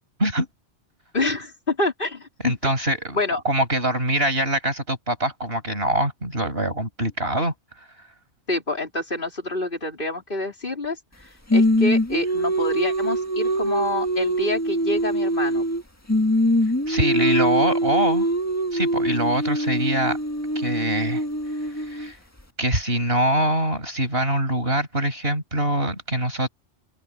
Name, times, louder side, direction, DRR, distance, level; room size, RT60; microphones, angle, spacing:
voice 1, 1.1-2.7 3.1-3.4 8.5-15.6, left 2 dB, 45° left, 4.6 m, -27 dB
voice 2, 2.4-3.2 3.4-7.5 16.9-18.3 18.7-20.2 20.5-21.2 21.6-22.2 22.6-26.5, right 1 dB, 55° right, 6.9 m, -24 dB
Singing, 11.5-15.8 16.1-22.1, equal, 15° left, 1.8 m, -23 dB
omnidirectional pair, 1.2 m